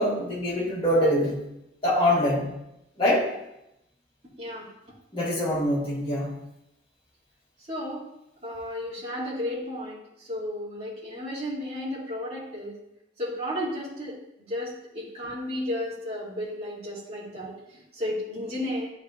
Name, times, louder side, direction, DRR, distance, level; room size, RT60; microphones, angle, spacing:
voice 1, 0.0-1.4 1.8-2.5 3.0-3.3 5.1-6.3, left 1 dB, 25° left, -7 dB, 2.2 m, -24 dB
voice 2, 7.7-8.1 8.4-10.0 10.2-12.8 13.2-17.5 17.9-18.9, left 1 dB, 30° right, -9 dB, 2.2 m, -33 dB
10.5 x 3.9 x 3.1 m, 0.87 s
head